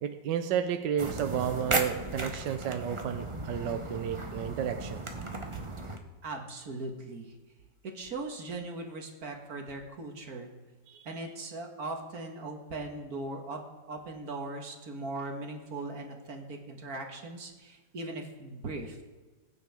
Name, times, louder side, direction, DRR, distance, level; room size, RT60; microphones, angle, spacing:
voice 1, 0.0-5.0 10.9-11.1, right 8 dB, 75° right, 8 dB, 1.3 m, -32 dB
sound 1, 1.0-6.0, right 2 dB, 30° right, 0.5 m, -36 dB
voice 2, 6.2-7.3 7.8-10.5 11.0-13.6 13.9-19.0, right 2 dB, 55° right, 3 dB, 1.8 m, -39 dB
20.5 x 9.3 x 3.5 m, 1.2 s
omnidirectional pair, 2.1 m